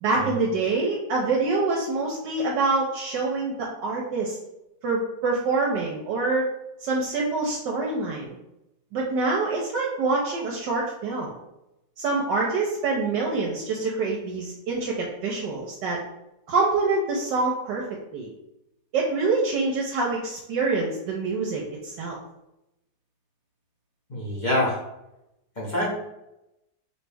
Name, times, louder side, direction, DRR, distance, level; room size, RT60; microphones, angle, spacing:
voice 1, 0.0-4.4 4.8-6.5 6.8-8.4 8.9-11.3 12.0-16.0 16.5-17.8 18.1-18.3 18.9-22.2, right 3 dB, 75° right, -2 dB, 1.3 m, -26 dB
voice 2, 24.1-24.8 25.6-25.9, left 1 dB, 30° left, -5 dB, 0.9 m, -26 dB
4.7 x 3.1 x 3.4 m, 0.88 s
omnidirectional pair, 2.0 m